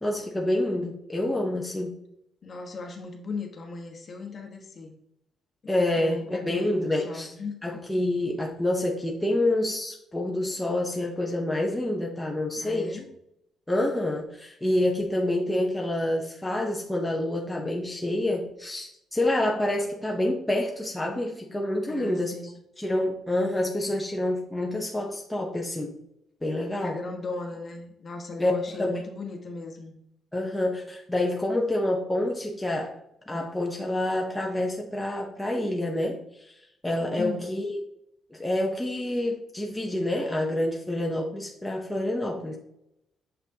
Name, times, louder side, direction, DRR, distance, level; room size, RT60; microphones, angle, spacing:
voice 1, 0.0-2.0 5.7-7.3 7.6-13.0 13.7-22.5 22.8-25.9 26.4-27.0 28.4-28.5 28.8-28.9 30.3-33.0 33.3-37.8 38.3-42.6, left 1 dB, 5° left, -1 dB, 0.8 m, -27 dB
voice 2, 2.4-4.9 6.0-7.6 12.6-13.0 21.9-22.6 26.8-29.9 37.2-37.5, left 3 dB, 35° left, 2 dB, 1.2 m, -37 dB
6.9 x 5.8 x 2.8 m, 0.79 s
cardioid pair, 140°, 0 cm